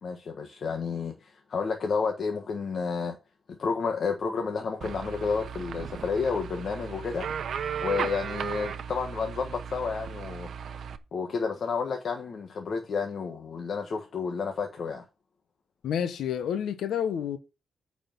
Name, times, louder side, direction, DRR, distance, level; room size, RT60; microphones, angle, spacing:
voice 1, 0.0-3.1 3.6-7.3 7.8-10.5 11.1-15.0, left 5 dB, 55° left, 1.4 m, -31 dB
sound 1, 4.8-11.0, right 7 dB, 65° right, 0.9 m, -36 dB
voice 2, 15.8-17.4, left 8 dB, 80° left, 1.1 m, -29 dB
9.1 x 5.0 x 6.0 m
cardioid pair, 90°, 0 cm